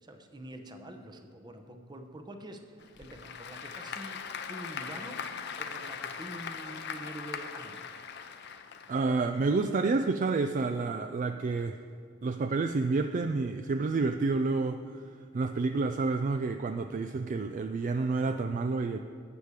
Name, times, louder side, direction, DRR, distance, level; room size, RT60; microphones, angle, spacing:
voice 1, 0.0-7.9, right 1 dB, 20° right, 6 dB, 0.9 m, -46 dB
Applause / Crowd, 2.8-9.4, left 6 dB, 60° left, 0.7 m, -40 dB
voice 2, 8.9-11.8 12.2-15.0 15.3-19.0, right 3 dB, 40° right, 8 dB, 0.3 m, -29 dB
12.0 x 8.2 x 4.9 m, 2.4 s
head